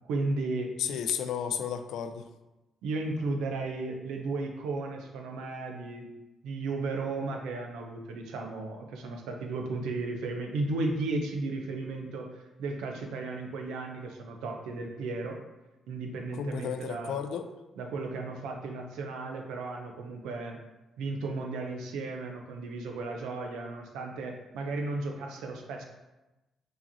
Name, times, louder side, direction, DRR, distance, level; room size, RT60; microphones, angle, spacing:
voice 1, 0.1-0.7 2.8-6.1 6.4-12.3 12.6-15.4 15.9-17.2 17.8-20.6 21.0-25.8, right 3 dB, 90° right, 3 dB, 0.5 m, -34 dB
voice 2, 0.8-2.3 16.3-17.5, left 8 dB, 80° left, 8 dB, 0.3 m, -33 dB
4.8 x 2.9 x 2.7 m, 1.0 s
cardioid pair, 90°, 0 cm